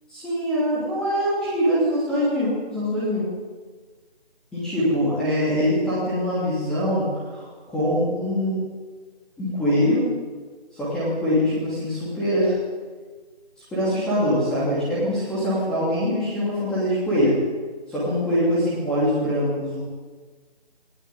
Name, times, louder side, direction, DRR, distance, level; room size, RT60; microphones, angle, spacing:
voice 1, 0.1-3.2 4.5-8.6 9.4-10.0 10.7-12.5 13.6-17.3 17.9-19.8, equal, ahead, -10 dB, 2.9 m, -23 dB
19.0 x 19.0 x 8.9 m, 1.4 s
figure-of-eight pair, 170°, 32 cm